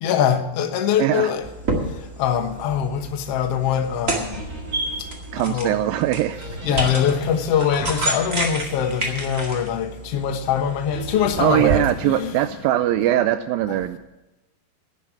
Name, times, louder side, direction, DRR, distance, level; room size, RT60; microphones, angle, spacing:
voice 1, 0.0-1.4 2.2-4.4 5.0-5.1 5.3-5.7 6.6-12.4, left 8 dB, 75° left, 1.4 m, -23 dB
voice 2, 1.0-1.3 5.3-6.8 11.4-14.0, right 13 dB, 85° right, 2.1 m, -21 dB
sound 1, 1.4-11.8, right 2 dB, 35° right, 1.3 m, -30 dB
sound 2, 4.3-9.6 10.9-12.8, right 2 dB, 20° right, 5.0 m, -38 dB
11.0 x 9.7 x 7.1 m
omnidirectional pair, 4.6 m